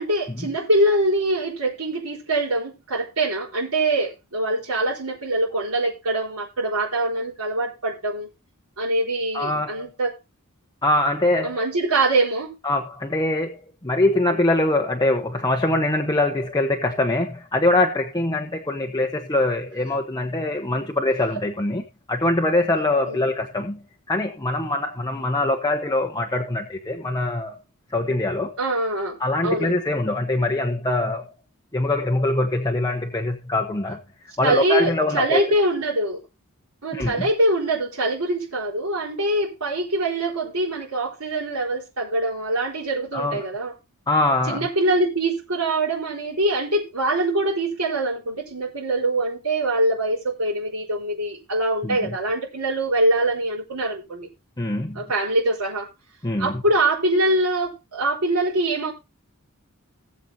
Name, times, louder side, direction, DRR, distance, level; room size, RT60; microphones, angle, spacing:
voice 1, 0.0-8.3 8.8-10.1 11.4-12.5 23.1-23.2 28.6-29.2 29.4-29.8 34.4-36.2 36.8-43.7 44.5-54.3 54.9-55.9 56.4-58.9, right 1 dB, 75° right, 4.3 m, -23 dB
voice 2, 9.3-9.9 10.8-11.7 12.6-21.8 22.1-27.5 27.9-28.6 29.2-31.3 31.7-35.4 36.9-37.3 43.1-43.5 44.1-44.7 51.8-52.1 54.6-55.0 56.2-56.6, left 2 dB, 20° left, 1.1 m, -23 dB
18.5 x 8.0 x 2.8 m
head